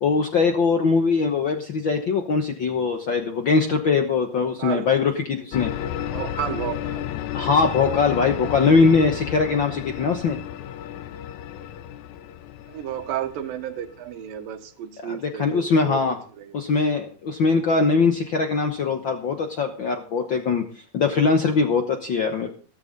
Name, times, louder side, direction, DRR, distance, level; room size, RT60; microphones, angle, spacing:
voice 1, 0.0-5.7 7.3-10.4 15.0-16.2 16.5-22.5, left 4 dB, 90° left, 5 dB, 1.0 m, -21 dB
sound 1, 5.5-14.4, left 11 dB, 70° left, 2.0 m, -32 dB
voice 2, 6.1-7.1 12.7-16.5, right 10 dB, 90° right, 9 dB, 2.9 m, -32 dB
15.0 x 14.0 x 4.0 m, 0.40 s
omnidirectional pair, 4.0 m